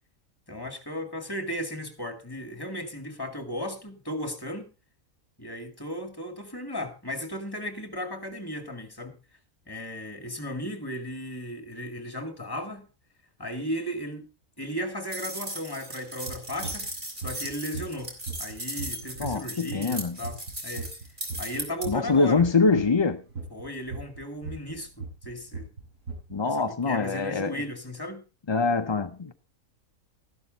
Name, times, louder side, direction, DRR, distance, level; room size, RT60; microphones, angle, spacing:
voice 1, 0.5-4.7 5.4-9.2 9.7-12.9 13.4-14.3 14.6-16.9 17.2-20.9 21.4-22.5 23.5-25.7 26.5-28.2, equal, 15° left, 2.1 m, -35 dB
sound 1, 15.1-21.9, right 1 dB, 35° right, 3.2 m, -37 dB
sound 2, 16.3-23.0 23.3-26.3, right 4 dB, 65° right, 6.0 m, -37 dB
voice 2, 19.2-20.2 21.9-23.2 26.3-27.6 28.5-29.3, left 4 dB, 40° left, 0.4 m, -24 dB
13.0 x 11.5 x 4.0 m
omnidirectional pair, 1.5 m